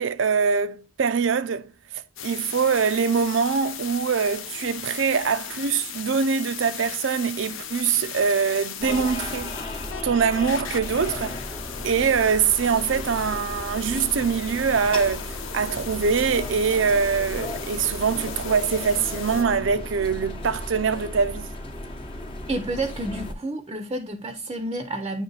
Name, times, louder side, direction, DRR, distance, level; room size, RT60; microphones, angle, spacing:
voice 1, 0.0-1.7 1.9-9.6 10.0-11.4 11.8-21.5, right 6 dB, 70° right, 0.5 m, -23 dB
sound 1, 2.2-19.4, left 7 dB, 85° left, 0.8 m, -37 dB
sound 2, 8.8-23.3, left 1 dB, 30° left, 0.9 m, -35 dB
voice 2, 22.5-25.2, right 2 dB, 25° right, 0.6 m, -30 dB
8.9 x 3.2 x 3.9 m
head